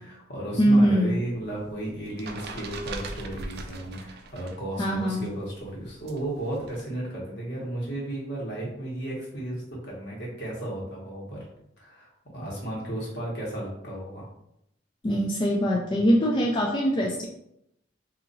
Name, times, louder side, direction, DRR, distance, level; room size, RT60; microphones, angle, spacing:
voice 1, 0.0-11.4 11.8-14.2, right 1 dB, 60° left, -4 dB, 1.4 m, -34 dB
voice 2, 0.6-1.2 4.8-5.3 15.0-17.3, equal, 25° left, -1 dB, 0.4 m, -22 dB
sound 1, 1.3-4.7 4.9-6.8, right 3 dB, 55° right, 0.4 m, -40 dB
2.7 x 2.6 x 4.0 m, 0.78 s
head